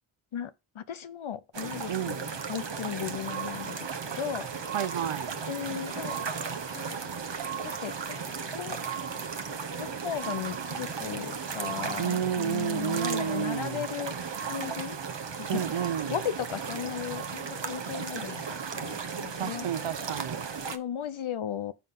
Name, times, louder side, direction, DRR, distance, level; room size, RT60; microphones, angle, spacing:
voice 1, 0.3-4.5 5.5-6.2 6.7-7.0 7.6-8.8 9.8-14.1 14.4-15.0 15.4-19.7 20.7-21.7, left 9 dB, 75° left, 0.8 m, -36 dB
sound 1, 1.5-20.8, right 6 dB, 60° right, 1.1 m, -36 dB
voice 2, 1.9-2.2 4.7-5.3 12.0-13.8 15.5-16.2 19.4-20.4, right 9 dB, 80° right, 0.8 m, -31 dB
sound 2, 2.4-19.2 20.0-20.1, right 7 dB, 25° right, 0.8 m, -44 dB
9.7 x 5.7 x 3.8 m
wide cardioid pair, 60°, 49 cm